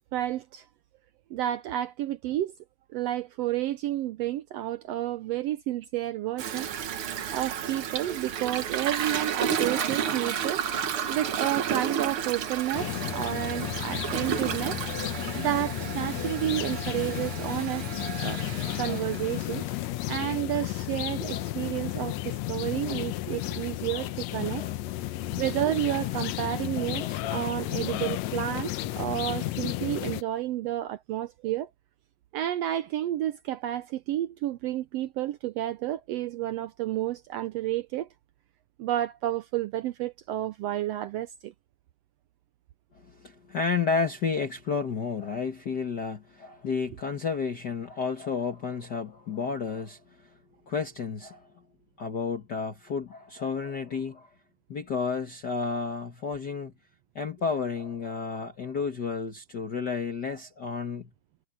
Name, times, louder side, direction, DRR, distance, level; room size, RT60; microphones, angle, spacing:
voice 1, 0.1-0.7 1.3-2.5 2.9-6.7 7.3-10.6 11.1-14.8 15.4-17.9 18.2-18.4 18.7-24.6 25.4-31.7 32.3-38.1 38.8-41.5, right 13 dB, 80° right, 1.5 m, -31 dB
Toilet flush, 6.4-19.8, right 8 dB, 55° right, 1.8 m, -32 dB
sound 1, 12.7-30.2, left 16 dB, 75° left, 1.8 m, -33 dB
voice 2, 24.3-25.4 26.8-27.7 42.9-50.3 50.7-51.5 52.0-54.3 54.7-56.7 57.1-61.1, left 5 dB, 45° left, 1.6 m, -32 dB
omnidirectional pair, 3.4 m